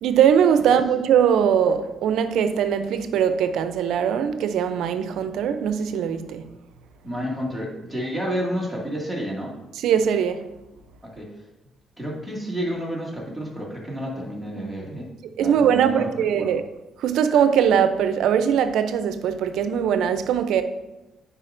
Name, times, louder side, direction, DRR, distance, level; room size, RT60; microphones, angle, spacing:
voice 1, 0.0-6.4 9.8-10.4 15.4-16.6 17.0-20.6, right 8 dB, 80° right, 0.5 m, -21 dB
voice 2, 7.0-9.5 11.1-11.3 12.0-15.1 15.4-16.1 16.4-16.5, equal, ahead, 2.1 m, -30 dB
9.7 x 4.8 x 2.6 m
cardioid pair, 90°, 0 cm